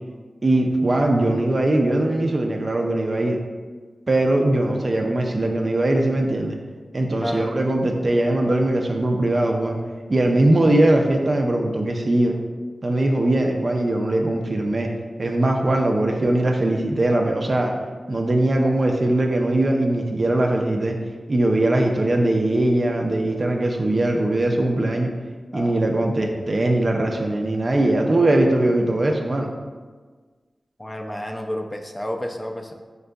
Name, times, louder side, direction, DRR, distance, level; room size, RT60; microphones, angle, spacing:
voice 1, 0.4-3.4 4.1-6.6 6.9-9.8 10.1-12.3 12.8-14.9 15.2-17.7 18.1-21.0 21.3-25.1 25.5-29.5, right 1 dB, 50° right, 2 dB, 0.4 m, -20 dB
voice 2, 25.5-25.9 30.8-32.7, equal, 20° left, 3 dB, 0.4 m, -30 dB
4.5 x 2.5 x 2.2 m, 1.4 s
cardioid pair, 40°, 0 cm